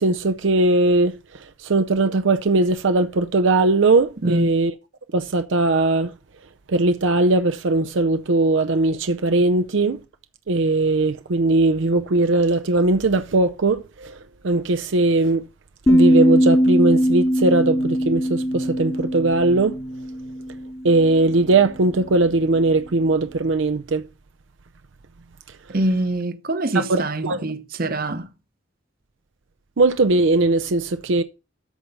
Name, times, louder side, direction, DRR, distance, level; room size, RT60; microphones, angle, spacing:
voice 1, 0.0-4.7 5.1-6.1 6.7-10.0 10.5-15.5 15.9-19.8 20.8-24.0 26.7-27.4 29.8-31.2, right 2 dB, 80° right, 0.6 m, -19 dB
sound 1, 15.9-21.0, equal, 15° left, 1.0 m, -20 dB
voice 2, 25.7-28.3, right 1 dB, 50° right, 1.0 m, -24 dB
13.5 x 4.6 x 5.3 m
head